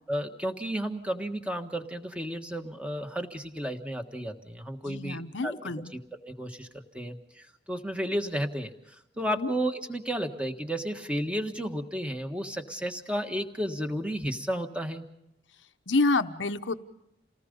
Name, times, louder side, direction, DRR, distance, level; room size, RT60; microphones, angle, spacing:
voice 1, 0.1-5.6 5.9-6.0 6.3-6.7 6.9-15.0, equal, 5° right, 5 dB, 1.6 m, -32 dB
voice 2, 4.8-5.9 9.2-9.5 15.9-16.7, left 3 dB, 80° left, 9 dB, 1.0 m, -28 dB
29.0 x 19.0 x 5.3 m, 0.84 s
head